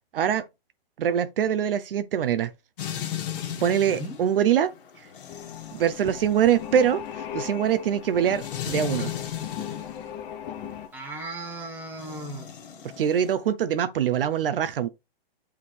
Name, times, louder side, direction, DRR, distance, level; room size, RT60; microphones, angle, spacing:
voice 1, 0.1-0.4 1.0-2.5 3.6-4.7 5.7-9.1 13.0-14.9, right 9 dB, 65° right, 0.7 m, -23 dB
sound 1, 2.8-10.0 11.9-13.3, left 10 dB, 60° left, 1.8 m, -36 dB
voice 2, 3.9-4.2 10.9-12.5, right 2 dB, 5° right, 1.4 m, -36 dB
sound 2, 5.3-10.9, left 9 dB, 20° left, 0.7 m, -38 dB
8.5 x 3.8 x 3.3 m
hypercardioid pair, 165°, 31 cm